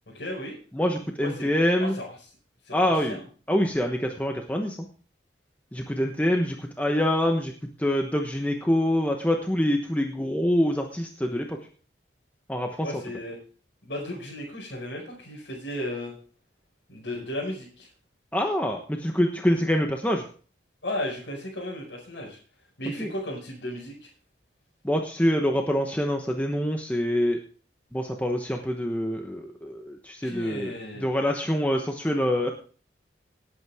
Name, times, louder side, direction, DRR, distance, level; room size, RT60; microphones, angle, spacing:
voice 1, 0.1-0.6 1.2-1.5 1.8-2.1 2.6-3.2 12.8-13.4 13.8-16.1 16.9-17.9 20.8-22.4 22.8-24.1 30.2-31.1, left 1 dB, 70° left, -5 dB, 5.3 m, -35 dB
voice 2, 0.7-1.9 2.7-4.9 5.7-7.5 7.8-11.6 12.5-12.9 18.3-20.2 23.0-23.1 24.8-27.4 27.9-32.5, equal, 10° left, 3 dB, 1.1 m, -25 dB
18.5 x 8.5 x 3.6 m, 0.40 s
head